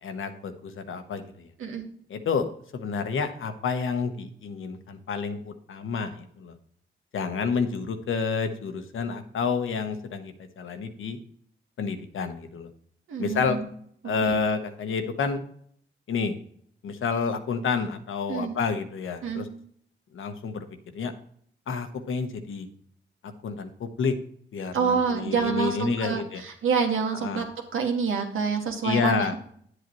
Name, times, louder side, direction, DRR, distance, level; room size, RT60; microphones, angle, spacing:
voice 1, 0.0-1.5 2.1-6.5 7.1-11.2 11.8-12.7 13.2-13.6 14.0-15.4 16.1-16.4 16.8-19.5 20.1-20.6 20.9-21.1 21.7-22.7 23.4-24.1 24.5-26.4 27.2-27.4 28.8-29.4, left 5 dB, 75° left, 8 dB, 1.1 m, -29 dB
voice 2, 13.1-13.7 14.2-14.4 18.3-18.6 19.2-19.5 24.7-27.5 27.7-29.4, right 5 dB, 80° right, 2 dB, 1.8 m, -27 dB
9.9 x 7.9 x 3.1 m, 0.62 s
cardioid pair, 70°, 21 cm